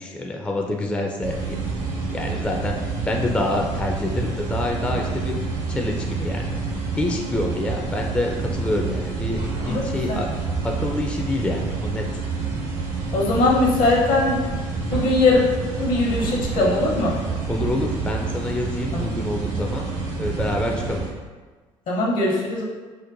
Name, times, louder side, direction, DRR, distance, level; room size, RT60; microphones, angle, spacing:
voice 1, 0.0-1.6 2.1-5.4 5.7-6.6 7.0-10.3 10.6-12.1 17.5-21.0, left 1 dB, 5° left, 1 dB, 0.4 m, -27 dB
sound 1, 1.2-21.1, right 4 dB, 75° right, 1.2 m, -28 dB
voice 2, 9.7-10.2 13.1-14.4 14.9-15.4 15.8-17.1 18.9-19.0 21.9-22.6, left 2 dB, 60° left, -2 dB, 1.0 m, -20 dB
4.4 x 2.1 x 2.6 m, 1.4 s
hypercardioid pair, 55°, 15 cm